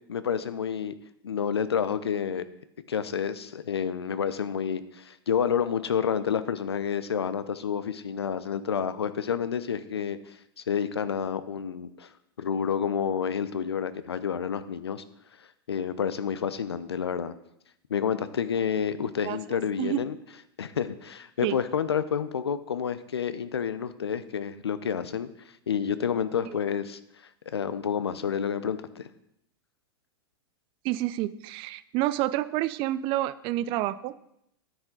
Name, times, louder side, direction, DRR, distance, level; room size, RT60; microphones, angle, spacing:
voice 1, 0.1-0.9 1.2-2.4 2.9-10.4 10.7-12.1 12.4-15.0 15.7-17.3 17.9-20.2 20.6-25.3 25.7-27.0 27.5-29.0, left 7 dB, 85° left, 13 dB, 0.7 m, -29 dB
voice 2, 30.8-34.1, right 15 dB, 40° right, 16 dB, 0.5 m, -28 dB
10.0 x 8.1 x 3.8 m, 0.77 s
hypercardioid pair, 105°, 13 cm